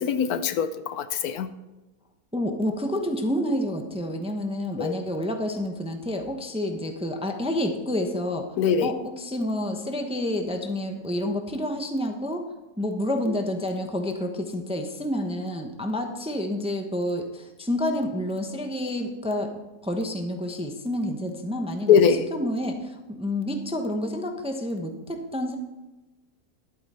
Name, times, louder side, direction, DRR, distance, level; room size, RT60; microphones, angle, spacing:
voice 1, 0.0-1.5 4.8-4.9 8.6-8.9 21.9-22.2, left 7 dB, 80° left, 12 dB, 1.2 m, -22 dB
voice 2, 2.3-8.5 8.8-12.5 12.8-19.5 19.8-25.6, left 1 dB, 5° right, 4 dB, 0.7 m, -29 dB
11.5 x 8.9 x 4.3 m, 1.1 s
omnidirectional pair, 1.6 m